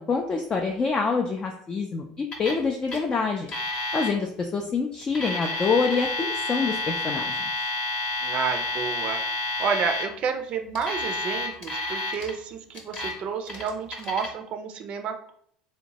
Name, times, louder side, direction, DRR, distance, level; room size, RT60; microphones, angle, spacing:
voice 1, 0.0-3.5 3.9-7.5, left 4 dB, 30° left, 2 dB, 0.3 m, -26 dB
Alarm, 2.3-2.6 2.9-3.0 3.5-4.1 5.0-10.0 10.8-12.3 12.7-13.1 13.5-14.3, left 2 dB, 45° left, 0.8 m, -30 dB
voice 2, 8.2-15.3, right 6 dB, 50° right, 6 dB, 0.4 m, -30 dB
2.8 x 2.1 x 2.8 m, 0.65 s
supercardioid pair, 95°, 3 cm